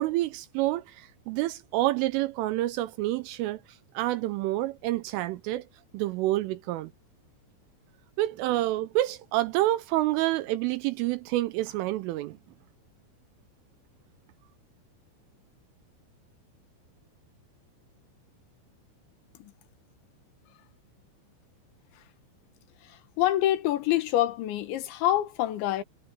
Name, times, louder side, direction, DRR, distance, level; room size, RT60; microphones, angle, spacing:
voice 1, 0.0-3.6 3.9-5.6 5.9-6.9 8.2-12.4, right 16 dB, 85° right, 3.4 m, -28 dB
voice 2, 22.8-25.8, left 13 dB, 70° left, 3.5 m, -26 dB
omnidirectional pair, 5.7 m